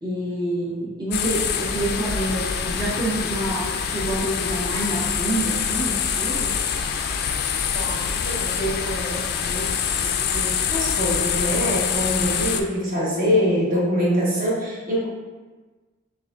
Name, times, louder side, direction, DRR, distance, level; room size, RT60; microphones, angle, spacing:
voice 1, 0.0-6.6, right 1 dB, 20° right, -8 dB, 0.6 m, -27 dB
sound 1, 1.1-12.6, left 7 dB, 50° left, 0.3 m, -25 dB
voice 2, 7.6-15.1, equal, 45° right, -6 dB, 1.1 m, -25 dB
6.3 x 2.5 x 2.3 m, 1.3 s
head